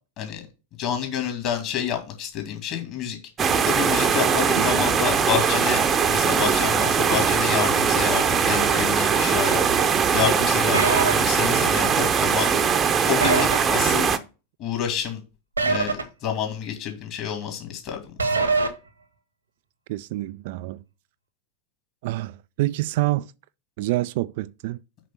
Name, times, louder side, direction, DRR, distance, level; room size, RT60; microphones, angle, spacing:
voice 1, 0.8-3.2 3.6-9.6 10.1-12.5 13.0-14.1 14.6-15.2 15.6-18.0 18.3-18.4, left 8 dB, 40° left, 2.4 m, -28 dB
sound 1, 3.4-14.2, right 6 dB, 25° right, 0.8 m, -21 dB
voice 2, 4.6-4.9 19.9-20.8 22.0-23.3 23.8-24.8, right 18 dB, 50° right, 0.3 m, -27 dB
sound 2, 10.7-11.1 13.2-13.6 15.6-16.0 18.2-18.7, right 4 dB, 80° right, 1.2 m, -22 dB
6.1 x 5.2 x 6.0 m
figure-of-eight pair, 90°, 0 cm